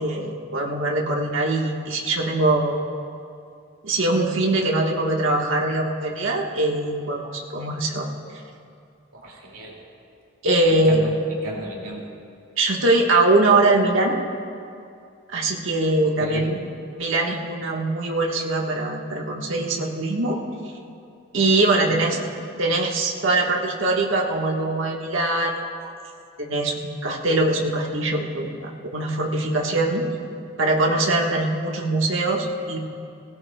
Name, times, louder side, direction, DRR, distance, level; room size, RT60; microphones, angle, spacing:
voice 1, 0.0-2.8 3.8-8.1 10.4-11.1 12.6-14.2 15.3-16.5 17.0-20.4 21.3-22.2 22.6-25.7 26.4-30.0 30.6-32.8, right 2 dB, 65° right, -1 dB, 1.3 m, -22 dB
voice 2, 9.1-9.8 10.7-11.0 11.3-12.1 16.0-16.6 21.9-22.1, right 1 dB, 90° right, -1 dB, 2.2 m, -35 dB
18.0 x 16.5 x 2.2 m, 2.5 s
head